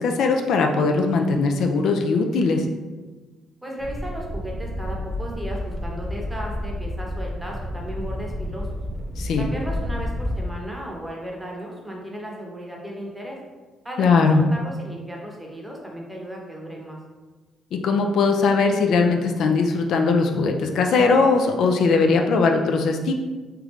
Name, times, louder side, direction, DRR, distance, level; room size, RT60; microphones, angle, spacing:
voice 1, 0.0-2.6 9.2-9.5 14.0-14.4 17.7-23.1, left 4 dB, 75° left, 3 dB, 0.3 m, -20 dB
voice 2, 3.6-8.7 9.4-13.4 13.8-17.0, equal, 10° right, -1 dB, 0.8 m, -35 dB
sound 1, 3.8-10.4, left 1 dB, 30° right, 0.4 m, -30 dB
3.4 x 2.4 x 3.0 m, 1.3 s
cardioid pair, 90°, 0 cm